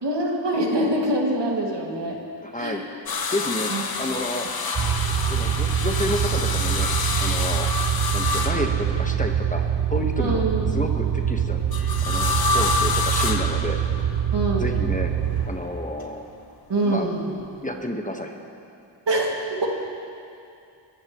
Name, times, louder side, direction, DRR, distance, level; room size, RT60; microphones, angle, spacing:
voice 1, 0.0-2.2 2.5-2.8 3.7-3.8 10.2-10.7 14.3-14.7 16.7-17.3 19.1-19.7, right 1 dB, 65° right, -1 dB, 2.3 m, -24 dB
voice 2, 2.4-2.8 3.3-3.7 4.0-4.5 5.3-6.9 7.2-7.7 8.1-9.6 9.9-10.4 10.7-11.6 12.1-13.8 14.6-15.1 15.5-16.2 16.8-17.1 17.6-18.4, left 1 dB, 15° left, 3 dB, 1.3 m, -30 dB
sound 1, 3.1-9.3 11.7-14.2 15.2-16.0 17.4-17.5, left 4 dB, 50° left, 1.0 m, -28 dB
sound 2, 4.8-15.5, right 9 dB, 45° right, 0.9 m, -24 dB
22.5 x 14.5 x 3.1 m, 2.6 s
cardioid pair, 55°, 46 cm